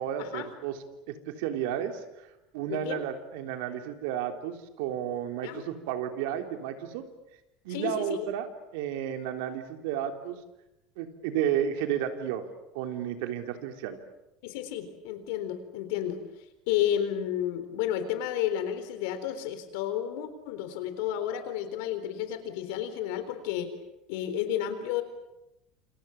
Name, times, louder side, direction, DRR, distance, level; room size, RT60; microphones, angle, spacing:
voice 1, 0.0-2.3 2.5-7.0 7.6-8.5 8.7-10.4 11.0-12.4 12.7-14.0, right 10 dB, 75° right, 6 dB, 3.4 m, -32 dB
voice 2, 2.7-3.0 5.4-5.6 7.7-8.3 14.4-16.2 16.7-23.7 24.1-25.0, left 10 dB, 75° left, 10 dB, 3.9 m, -31 dB
28.0 x 27.5 x 7.2 m, 0.89 s
cardioid pair, 170°, 0 cm